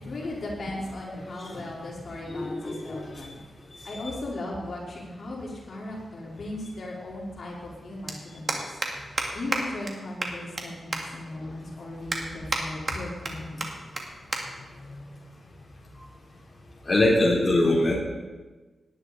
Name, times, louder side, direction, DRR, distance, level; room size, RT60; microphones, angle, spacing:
voice 1, 0.0-3.4 3.8-8.6 9.1-13.7, left 2 dB, 60° left, -4 dB, 4.5 m, -37 dB
voice 2, 2.3-3.3 3.8-4.1 11.4-11.5 16.8-18.0, left 1 dB, 30° left, -5 dB, 3.9 m, -24 dB
sound 1, 5.8-5.9 7.3-7.4 7.6-7.8 8.1-8.2 8.5-8.9 9.2-9.3 9.5-9.6 9.9-10.0 10.2-10.6 10.9-11.0 11.5-11.6 12.1-12.6 12.9-13.3 13.6-13.7 14.0-14.1 14.3-14.4 14.7-15.0 15.7-16.0, right 3 dB, 40° right, 2.4 m, -29 dB
18.0 x 11.0 x 4.3 m, 1.2 s
cardioid pair, 75°, 0 cm